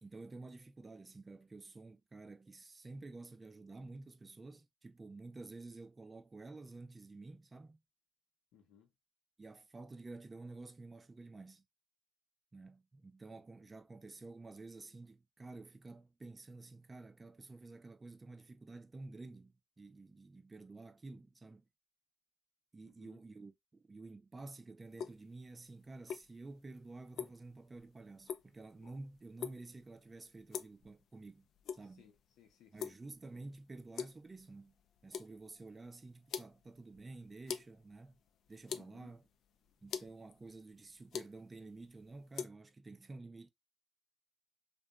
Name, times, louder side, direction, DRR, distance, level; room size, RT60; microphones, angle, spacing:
voice 1, 0.0-7.8 9.4-11.6 12.5-21.7 22.7-31.5 31.7-32.0 32.7-34.8 35.0-38.2 38.5-39.3 39.8-43.5, right 3 dB, 25° right, 0.4 m, -51 dB
voice 2, 8.5-8.9 23.0-23.2 32.0-33.0 38.7-39.2, left 9 dB, 90° left, 0.7 m, -63 dB
sound 1, 24.9-42.5, left 7 dB, 70° left, 0.3 m, -47 dB
2.8 x 2.2 x 2.2 m
cardioid pair, 90°, 0 cm